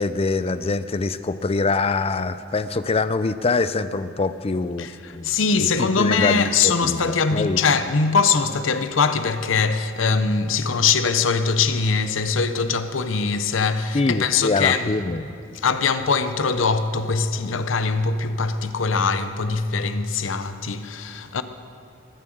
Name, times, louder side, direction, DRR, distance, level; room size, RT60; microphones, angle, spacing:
voice 1, 0.0-7.6 13.9-15.3, left 3 dB, 30° left, 0.5 m, -24 dB
voice 2, 5.2-14.9 15.6-21.4, left 5 dB, 75° left, 0.7 m, -22 dB
21.0 x 7.4 x 7.7 m
head